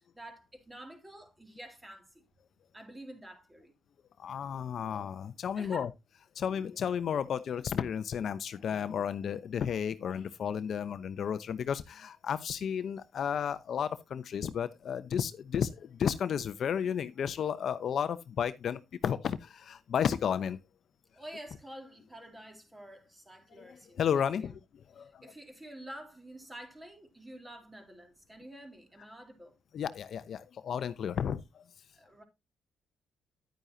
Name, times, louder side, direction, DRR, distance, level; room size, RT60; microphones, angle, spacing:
voice 1, 0.0-2.2 2.7-3.7 5.5-5.9 21.1-24.6 25.0-29.6 32.0-32.2, right 1 dB, 15° right, 3.6 m, -49 dB
voice 2, 4.2-5.9 6.3-20.6 23.6-24.6 24.9-25.2 29.7-31.6, left 8 dB, 60° left, 0.8 m, -33 dB
10.5 x 9.1 x 2.8 m
cardioid pair, 90°, 0 cm